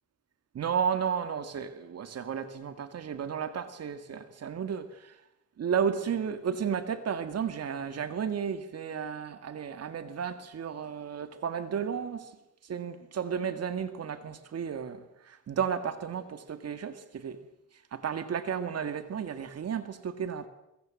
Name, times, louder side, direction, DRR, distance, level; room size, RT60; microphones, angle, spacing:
voice 1, 0.5-5.2 5.6-12.4 12.6-17.4 17.9-20.5, right 7 dB, 55° right, 2.2 m, -33 dB
25.0 x 23.0 x 7.7 m
cardioid pair, 90°, 30 cm